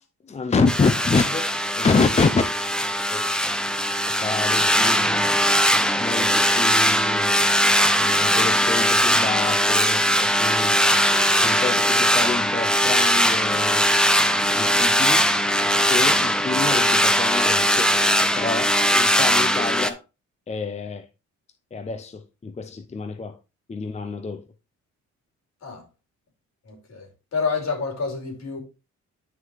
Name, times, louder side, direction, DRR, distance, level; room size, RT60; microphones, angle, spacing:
voice 1, 0.0-2.5 3.1-3.3 4.1-5.3 6.0-7.3 7.9-10.8 11.4-13.9 14.5-17.9 18.4-20.0 20.5-21.1 21.7-23.4 23.7-24.4, left 4 dB, 20° left, 0.6 m, -27 dB
sound 1, 0.7-19.9, equal, 5° left, 0.9 m, -20 dB
voice 2, 26.6-28.6, left 4 dB, 60° left, 5.0 m, -29 dB
9.3 x 6.0 x 3.2 m
cardioid pair, 90°, 30 cm